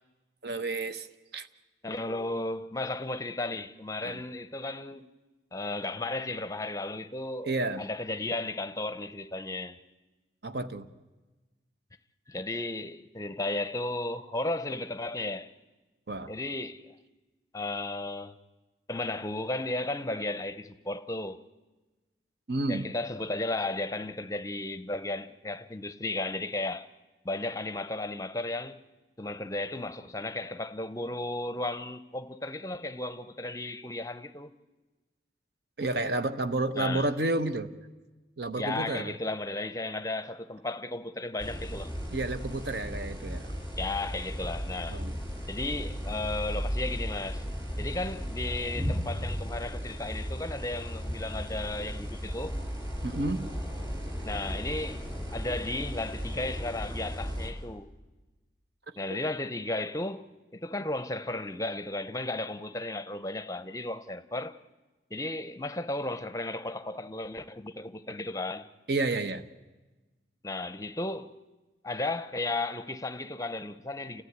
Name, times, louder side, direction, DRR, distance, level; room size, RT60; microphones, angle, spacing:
voice 1, 0.4-1.1 1.3-1.5 4.0-4.2 7.4-7.8 10.4-10.9 16.1-16.3 22.5-22.9 35.8-37.7 38.4-39.1 42.1-43.5 44.9-45.1 53.0-53.5 68.9-69.4, right 2 dB, 60° right, 1.0 m, -30 dB
voice 2, 1.8-5.1 5.5-9.8 12.3-15.5 16.3-16.9 17.5-18.4 18.9-21.4 22.7-26.9 27.2-28.8 29.2-34.6 36.8-37.1 38.6-41.9 43.8-45.0 45.5-47.4 47.8-52.6 54.2-57.9 59.0-64.6 65.1-68.7 70.4-71.4 71.8-74.2, left 2 dB, 20° left, 0.7 m, -34 dB
sound 1, 41.4-57.5, equal, 20° right, 5.3 m, -35 dB
29.0 x 14.5 x 9.4 m
head